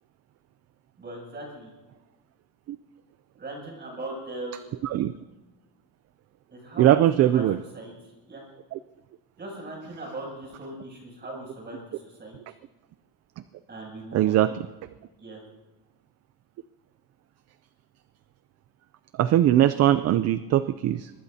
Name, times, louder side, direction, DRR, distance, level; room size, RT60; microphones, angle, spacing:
voice 1, 1.0-1.7 3.4-4.7 6.5-7.1 7.3-7.4 7.7-7.9 8.3-8.4 9.4-12.4 13.7-14.4 15.2-15.4, right 2 dB, 25° right, -1 dB, 7.5 m, -39 dB
voice 2, 4.8-5.1 6.8-7.6 8.7-8.8 14.1-14.7 19.2-21.1, right 12 dB, 40° right, 13 dB, 0.4 m, -21 dB
23.5 x 20.5 x 2.8 m, 1.2 s
cardioid pair, 160°, 43 cm